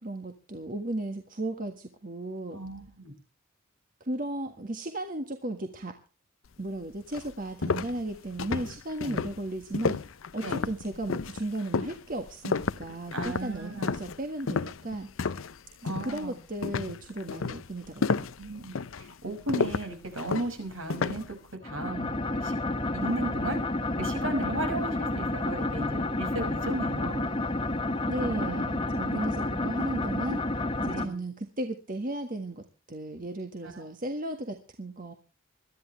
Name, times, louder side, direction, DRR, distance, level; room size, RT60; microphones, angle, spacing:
voice 1, 0.0-2.6 4.0-6.0 6.6-10.0 10.3-15.1 15.8-18.2 28.1-30.4 30.8-35.1, right 1 dB, 40° right, 5 dB, 1.6 m, -35 dB
voice 2, 2.5-3.1 9.0-9.2 10.4-10.6 13.1-14.0 15.8-16.4 18.4-21.4 21.6-22.6 22.9-23.6 24.0-27.3 28.2-29.3 30.9-31.2 33.6-33.8, right 1 dB, 70° right, 5 dB, 5.8 m, -35 dB
sound 1, 6.6-6.7 7.1-15.6 15.9-16.2 16.6-21.3, left 4 dB, 75° left, 0.7 m, -31 dB
sound 2, 21.6-31.1, left 2 dB, 25° left, 1.6 m, -30 dB
22.0 x 13.0 x 3.3 m, 0.34 s
head